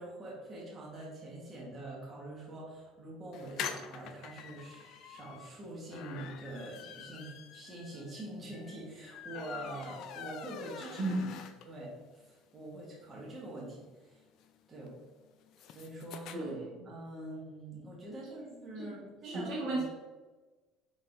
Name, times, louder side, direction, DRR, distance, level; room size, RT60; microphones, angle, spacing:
voice 1, 0.0-11.0 11.6-14.2 14.7-15.0 15.6-16.3 16.8-19.6, right 1 dB, 25° right, -4 dB, 1.3 m, -45 dB
sound 1, 3.3-11.9 12.3-12.4 12.6-12.7 13.0-16.4, left 7 dB, 60° left, 0.3 m, -45 dB
voice 2, 11.0-11.4 16.3-16.9 18.8-18.9 19.2-19.8, right 2 dB, 65° right, -4 dB, 1.3 m, -34 dB
4.0 x 3.8 x 2.6 m, 1.3 s
supercardioid pair, 110°, 0 cm